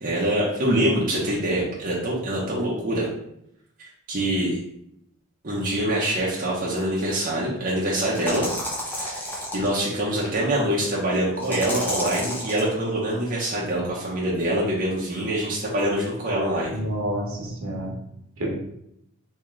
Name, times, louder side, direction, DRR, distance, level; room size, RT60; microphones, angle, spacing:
voice 1, 0.0-3.1 3.8-4.6 5.4-8.5 8.8-9.3 9.5-16.8, right 1 dB, 35° right, -5 dB, 0.7 m, -25 dB
sound 1, 6.8-6.9 8.1-9.7 11.4-12.7, equal, 10° left, 0.6 m, -31 dB
voice 2, 16.7-17.9 18.4-18.5, right 1 dB, 70° right, -1 dB, 1.0 m, -29 dB
3.1 x 2.8 x 3.7 m, 0.78 s
head